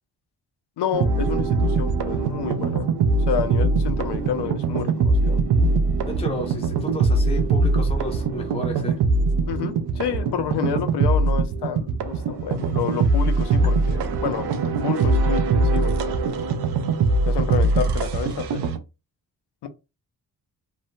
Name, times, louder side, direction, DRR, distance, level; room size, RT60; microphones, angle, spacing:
voice 1, 0.8-2.9 3.3-5.4 9.5-16.3 17.2-18.7 19.6-19.7, left 9 dB, 85° left, 0.6 m, -29 dB
sound 1, 0.9-18.8, right 3 dB, 80° right, 0.5 m, -22 dB
voice 2, 6.0-9.0, left 1 dB, 15° left, 0.4 m, -33 dB
2.7 x 2.1 x 2.6 m
wide cardioid pair, 175°, 40 cm